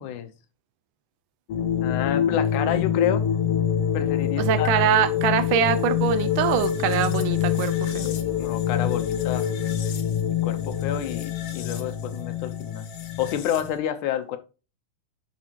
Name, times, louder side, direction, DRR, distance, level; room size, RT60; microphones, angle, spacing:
sound 1, 1.5-13.8, left 9 dB, 60° left, 1.8 m, -25 dB
voice 1, 1.8-3.3 3.9-4.8 8.0-9.5 10.4-12.8 13.2-14.4, left 10 dB, 80° left, 2.3 m, -29 dB
voice 2, 4.4-8.1, right 10 dB, 85° right, 2.4 m, -23 dB
9.3 x 6.0 x 2.9 m
omnidirectional pair, 3.6 m